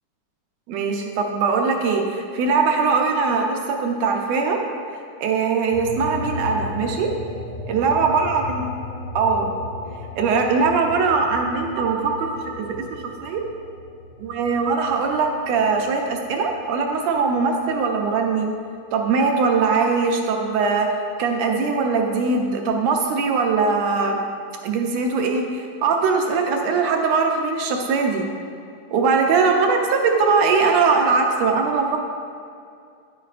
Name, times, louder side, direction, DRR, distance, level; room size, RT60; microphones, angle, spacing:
voice 1, 0.7-4.6 5.2-7.1 7.7-8.7 9.2-9.6 10.2-12.3 12.6-13.4 14.2-18.5 18.9-20.9 21.2-24.2 24.6-28.3 28.9-32.0, right 4 dB, 75° right, 2 dB, 1.7 m, -21 dB
sound 1, 5.7-16.6 17.0-18.4, left 1 dB, 75° left, 3.3 m, -36 dB
9.8 x 9.2 x 2.5 m, 2.4 s
omnidirectional pair, 3.5 m